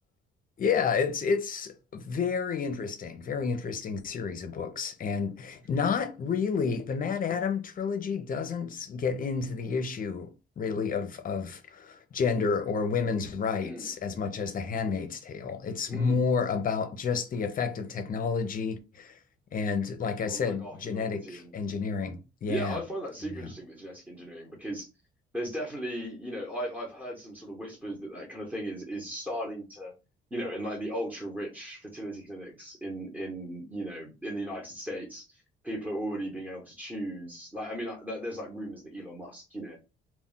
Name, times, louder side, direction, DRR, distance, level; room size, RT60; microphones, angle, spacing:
voice 1, 0.6-10.3 10.6-19.2 19.5-22.8 23.4-23.5, left 5 dB, 45° left, 0.6 m, -30 dB
voice 2, 13.6-13.9 15.9-16.2 20.3-21.5 22.5-24.9 25.3-29.9 30.3-35.3 35.6-39.8, right 1 dB, 10° right, 0.9 m, -37 dB
2.2 x 2.1 x 3.8 m
cardioid pair, 90°, 20 cm